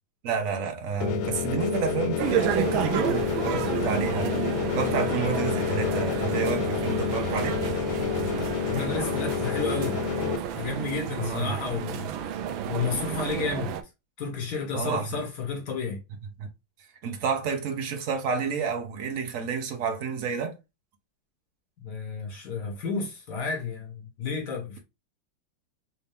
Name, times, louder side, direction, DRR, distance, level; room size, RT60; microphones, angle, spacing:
voice 1, 0.2-4.4 4.8-7.6 11.2-11.6 14.7-15.2 16.4-16.5 17.0-20.6, right 5 dB, 55° right, 0.9 m, -30 dB
sound 1, 1.0-10.4, left 9 dB, 85° left, 1.6 m, -29 dB
sound 2, 2.2-13.8, right 9 dB, 75° right, 1.3 m, -31 dB
voice 2, 8.7-10.0 10.5-12.1 12.7-13.7 14.2-16.0 21.8-24.8, left 5 dB, 50° left, 2.2 m, -31 dB
4.4 x 2.7 x 3.4 m
omnidirectional pair, 2.4 m